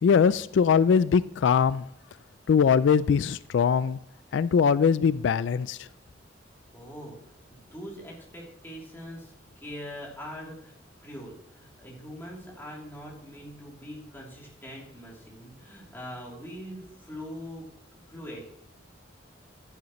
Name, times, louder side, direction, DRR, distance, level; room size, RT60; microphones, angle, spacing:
voice 1, 0.0-1.8 2.5-4.0 4.3-5.9, left 6 dB, 70° left, 0.3 m, -22 dB
voice 2, 6.7-7.2 7.5-18.4, equal, 10° left, 3.1 m, -42 dB
11.0 x 10.5 x 3.1 m
head